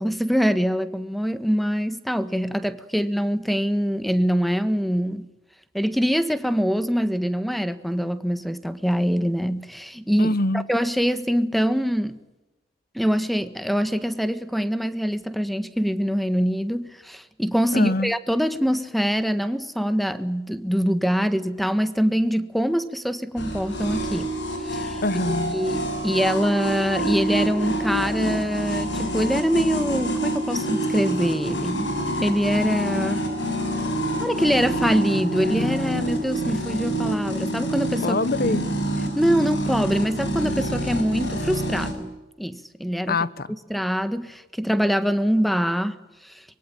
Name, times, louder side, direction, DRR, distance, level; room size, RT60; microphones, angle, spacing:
voice 1, 0.0-5.3 5.7-12.2 12.9-24.3 24.6-25.0 25.5-31.9 32.2-33.2 34.2-38.2 38.5-38.6 39.2-43.2 43.7-46.0 46.2-46.3, equal, ahead, 12 dB, 1.4 m, -24 dB
voice 2, 10.2-10.7 17.7-18.1 25.0-25.6 38.0-38.7 43.1-43.5, left 2 dB, 55° left, 17 dB, 1.2 m, -24 dB
sound 1, 23.4-41.9, right 1 dB, 70° left, 6.6 m, -27 dB
24.5 x 22.5 x 9.0 m, 1.0 s
head